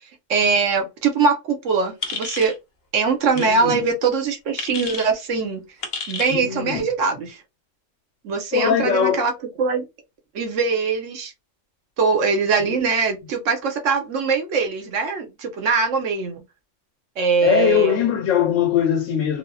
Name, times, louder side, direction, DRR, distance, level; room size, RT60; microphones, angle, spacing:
voice 1, 0.3-2.5 2.9-5.6 6.1-7.4 8.2-9.9 10.3-11.3 12.0-16.4 17.2-18.0, right 5 dB, 75° right, 1.2 m, -22 dB
sound 1, 2.0-2.6 3.3-3.5 4.6-5.1 5.8-6.4, left 4 dB, 60° left, 0.8 m, -31 dB
voice 2, 3.4-3.8 6.3-6.9 8.5-9.2 12.6-12.8 17.4-19.4, left 9 dB, 85° left, 1.0 m, -21 dB
3.4 x 2.0 x 2.3 m
omnidirectional pair, 1.3 m